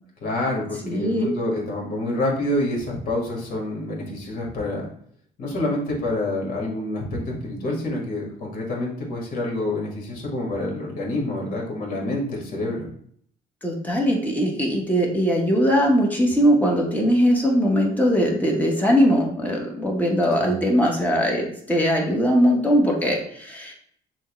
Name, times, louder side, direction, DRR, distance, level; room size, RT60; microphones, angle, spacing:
voice 1, 0.2-4.9 5.4-12.9 20.4-20.6, left 1 dB, 55° left, -1 dB, 1.7 m, -27 dB
voice 2, 0.8-1.3 13.6-23.7, equal, 10° left, -1 dB, 1.1 m, -20 dB
6.2 x 2.3 x 3.0 m, 0.64 s
cardioid pair, 110°, 17 cm